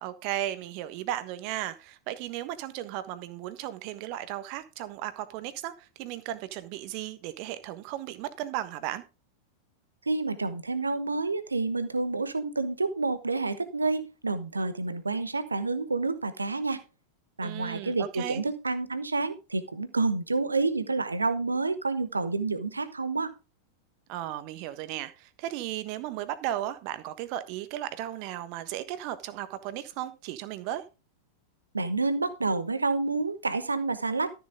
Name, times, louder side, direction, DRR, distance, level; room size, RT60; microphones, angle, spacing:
voice 1, 0.0-9.0 17.4-18.4 24.1-30.8, right 13 dB, 45° right, 13 dB, 1.3 m, -35 dB
voice 2, 10.1-16.8 17.4-23.3 31.7-34.4, right 3 dB, 80° right, 12 dB, 1.1 m, -29 dB
13.0 x 7.0 x 3.8 m, 0.30 s
figure-of-eight pair, 90°, 0 cm